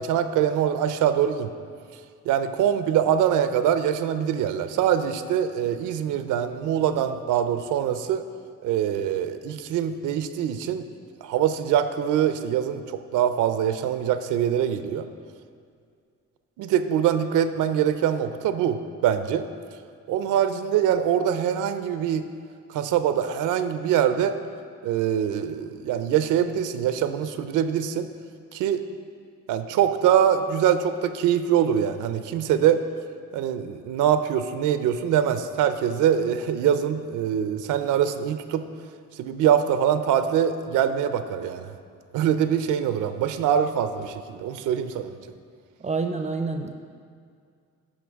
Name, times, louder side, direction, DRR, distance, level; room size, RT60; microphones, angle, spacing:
voice 1, 0.0-1.5 2.3-8.2 8.6-10.8 11.2-15.1 16.6-19.5 20.1-22.2 22.7-24.3 24.8-28.1 28.5-28.8 29.5-32.8 33.3-38.7 39.2-41.7 42.1-45.2, right 9 dB, 85° right, 10 dB, 0.5 m, -23 dB
voice 2, 45.8-46.7, right 4 dB, 25° right, 6 dB, 0.4 m, -28 dB
11.0 x 5.1 x 3.5 m, 2.2 s
cardioid pair, 90°, 30 cm